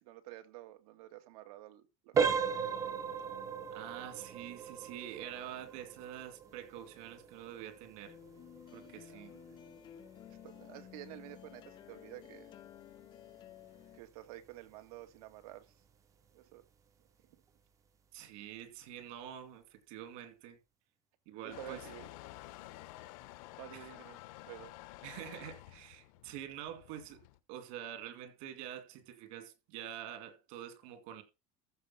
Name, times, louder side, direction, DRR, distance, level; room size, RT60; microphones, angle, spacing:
voice 1, 0.0-2.4 8.7-9.6 10.4-12.5 13.9-15.7 16.3-16.6 21.4-22.1 23.6-24.2 24.4-24.7, right 15 dB, 85° right, 2.1 m, -50 dB
sound 1, 2.1-12.8 13.2-13.4 14.0-14.1 14.6-14.7, right 6 dB, 15° right, 0.6 m, -38 dB
voice 2, 3.7-8.2 8.7-9.3 18.1-20.6 21.3-21.8 23.7-23.9 25.0-27.2 27.5-31.2, right 10 dB, 55° right, 2.6 m, -46 dB
sound 2, 6.8-14.0, left 10 dB, 25° left, 0.6 m, -54 dB
Motor vehicle (road) / Engine starting / Accelerating revving vroom, 21.5-27.4, left 17 dB, 65° left, 0.9 m, -51 dB
14.5 x 5.0 x 5.8 m
cardioid pair, 180°, 19 cm